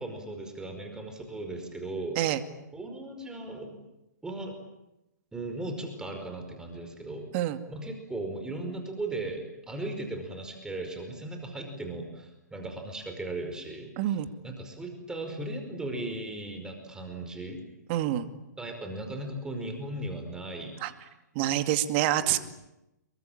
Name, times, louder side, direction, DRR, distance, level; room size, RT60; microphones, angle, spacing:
voice 1, 0.0-2.2 2.7-3.8 4.2-4.6 5.3-7.3 7.7-14.2 14.4-17.6 18.6-20.8 22.2-22.4, right 2 dB, 5° right, 4 dB, 5.1 m, -37 dB
voice 2, 14.0-14.3 17.9-18.3 20.8-20.9 21.3-22.4, right 13 dB, 40° right, 10 dB, 2.4 m, -26 dB
27.5 x 23.0 x 8.9 m, 0.91 s
hypercardioid pair, 125°, 10 cm